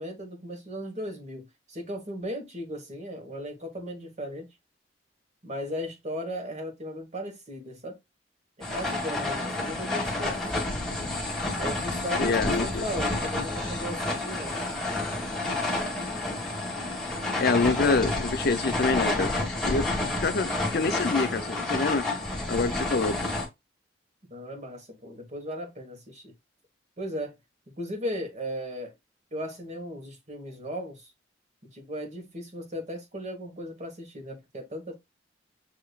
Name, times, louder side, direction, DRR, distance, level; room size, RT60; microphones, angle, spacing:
voice 1, 0.0-4.5 5.4-8.0 8.7-10.5 11.5-14.6 24.3-26.3 27.0-27.4 27.8-28.9 29.3-31.1 31.7-35.0, equal, 40° right, 1.3 m, -36 dB
sound 1, 8.6-23.5, left 2 dB, ahead, 1.5 m, -30 dB
voice 2, 12.2-12.8 17.4-19.3 19.7-19.9 20.2-22.1 22.5-23.4, left 4 dB, 55° left, 0.5 m, -26 dB
6.8 x 2.9 x 2.3 m
head